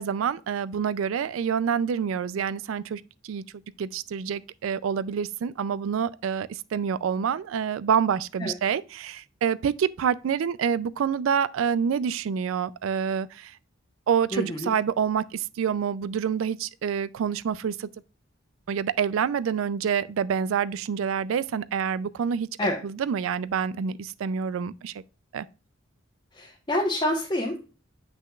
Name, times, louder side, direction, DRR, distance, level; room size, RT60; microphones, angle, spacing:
voice 1, 0.0-3.4 3.8-13.5 14.1-17.9 18.7-22.5 22.8-25.0 25.3-25.4, right 7 dB, 90° right, 0.4 m, -27 dB
voice 2, 14.3-14.7 22.6-22.8 26.3-27.6, left 1 dB, 25° left, 1.0 m, -27 dB
7.6 x 6.1 x 2.3 m
head